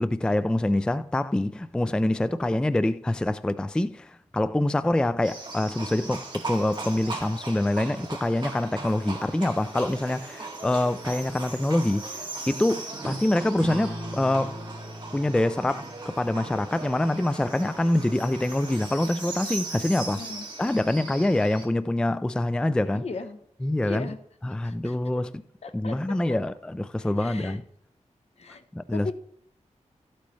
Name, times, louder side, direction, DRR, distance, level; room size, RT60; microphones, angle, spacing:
voice 1, 0.0-12.1 12.5-14.5 15.1-20.2 20.6-23.0 23.6-24.1 24.4-25.3 25.7-27.6 28.7-29.1, left 1 dB, 5° left, 0.3 m, -25 dB
Livestock farm animals working animals, 5.2-21.7, right 3 dB, 35° right, 2.3 m, -38 dB
sound 1, 13.6-18.4, equal, 10° right, 4.9 m, -40 dB
voice 2, 20.1-20.4 22.8-23.4 23.8-24.2 24.6-25.2 25.6-26.2 27.0-27.6 28.4-28.6 28.9-29.1, left 4 dB, 55° left, 0.9 m, -37 dB
12.5 x 8.4 x 3.2 m
wide cardioid pair, 105°, 13 cm